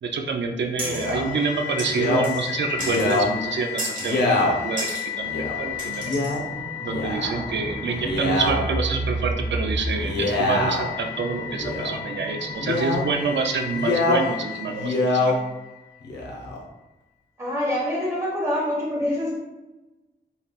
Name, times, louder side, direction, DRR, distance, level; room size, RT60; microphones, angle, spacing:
voice 1, 0.0-4.9 5.2-6.2 6.8-15.4, right 4 dB, 80° right, 4 dB, 0.5 m, -27 dB
Male speech man speaking, 0.8-1.3 1.9-2.2 2.8-3.3 4.0-4.5 5.3-5.5 6.0-6.4 6.8-7.4 7.9-8.6 9.9-10.9 11.5-12.0 12.6-13.1 13.7-14.2 14.7-15.3 16.0-16.6, left 2 dB, 70° left, 0.9 m, -24 dB
sound 1, 0.8-16.0, left 4 dB, 30° left, 1.2 m, -32 dB
sound 2, 0.8-1.2 1.8-2.5 2.8-3.2 3.8-4.2 4.8-5.1 5.8-6.4, right 1 dB, 45° right, 1.4 m, -33 dB
voice 2, 17.4-19.3, left 1 dB, 15° right, -6 dB, 1.4 m, -25 dB
5.6 x 3.3 x 2.4 m, 1.1 s
wide cardioid pair, 150°, 18 cm